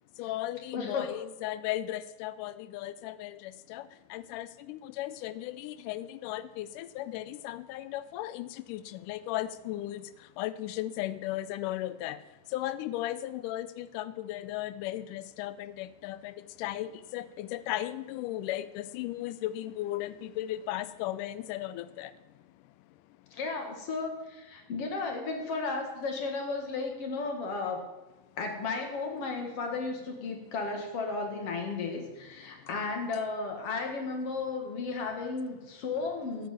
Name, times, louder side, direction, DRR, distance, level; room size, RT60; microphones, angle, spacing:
voice 1, 0.2-23.0 32.4-32.7, left 14 dB, 85° left, 15 dB, 2.1 m, -36 dB
voice 2, 0.7-1.1 23.3-27.8 28.4-36.5, left 4 dB, 50° left, 3 dB, 2.7 m, -34 dB
13.0 x 6.8 x 9.0 m, 1.1 s
omnidirectional pair, 3.7 m